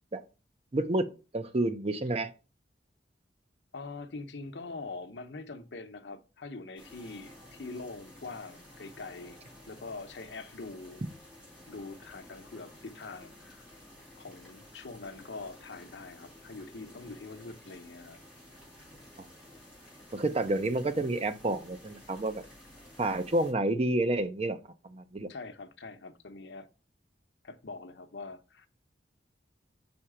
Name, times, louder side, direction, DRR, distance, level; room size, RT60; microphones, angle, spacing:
voice 1, 0.7-1.1 1.3-2.3 20.1-22.4 23.0-24.6 24.8-25.3, right 2 dB, 35° right, 0.6 m, -29 dB
voice 2, 3.7-9.4 9.7-11.0 11.7-13.7 14.2-18.2 25.3-26.7 27.4-28.7, left 3 dB, 70° left, 0.8 m, -43 dB
sound 1, 6.8-23.5, left 1 dB, 5° right, 3.9 m, -53 dB
5.5 x 4.4 x 4.9 m
head